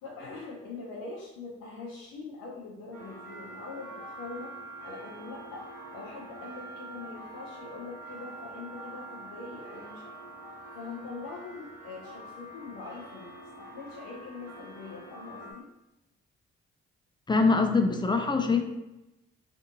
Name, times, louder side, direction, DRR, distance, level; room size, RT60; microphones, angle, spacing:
voice 1, 0.0-4.5 4.8-5.6 5.9-10.0 10.7-13.3 13.6-15.7, left 4 dB, 70° left, -4 dB, 0.6 m, -43 dB
sound 1, 2.9-15.5, right 2 dB, 70° right, 1.1 m, -45 dB
voice 2, 17.3-18.6, left 4 dB, 15° left, 6 dB, 0.3 m, -23 dB
2.6 x 2.5 x 2.7 m, 0.97 s
hypercardioid pair, 40°, 33 cm